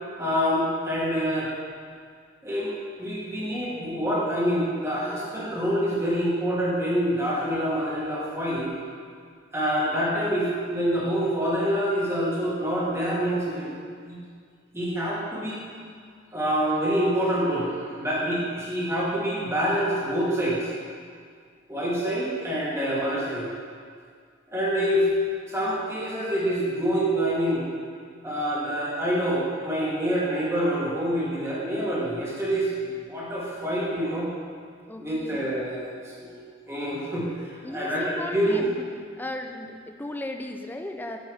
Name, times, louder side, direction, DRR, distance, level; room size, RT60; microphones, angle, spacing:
voice 1, 0.2-1.5 2.4-2.7 3.0-8.7 9.5-13.8 14.1-14.2 14.7-15.6 16.3-20.7 21.7-23.5 24.5-25.1 25.4-27.7 28.2-34.3 35.0-36.4 36.7-38.7, equal, 15° right, -7 dB, 1.3 m, -26 dB
voice 2, 34.9-35.5 37.6-38.8 39.2-41.2, left 1 dB, 10° left, 4 dB, 0.3 m, -36 dB
6.5 x 5.4 x 3.4 m, 2.1 s
head